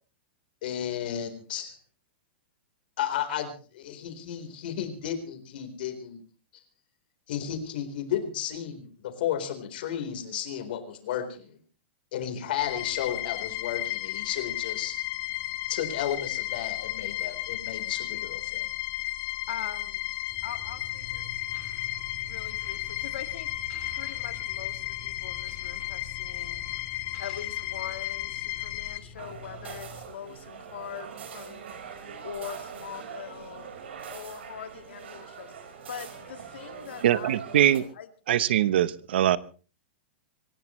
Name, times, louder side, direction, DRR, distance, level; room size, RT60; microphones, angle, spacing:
voice 1, 0.6-1.7 3.0-6.2 7.3-11.6 12.1-15.0 15.7-18.7, left 9 dB, 55° left, 4.1 m, -33 dB
sound 1, 12.6-29.0, left 16 dB, 35° left, 1.2 m, -34 dB
voice 2, 19.5-20.0 20.4-21.2 22.2-23.5 24.0-26.6 27.2-31.7 32.2-33.8 34.1-35.5 35.9-37.4 38.0-38.1, left 9 dB, 80° left, 2.2 m, -42 dB
sound 2, 20.3-30.1, left 1 dB, 15° left, 3.0 m, -48 dB
sound 3, 29.2-37.8, right 7 dB, 85° right, 5.0 m, -42 dB
voice 3, 37.0-37.8 38.3-39.4, right 11 dB, 70° right, 1.0 m, -22 dB
26.0 x 16.0 x 3.2 m
supercardioid pair, 170°, 6 cm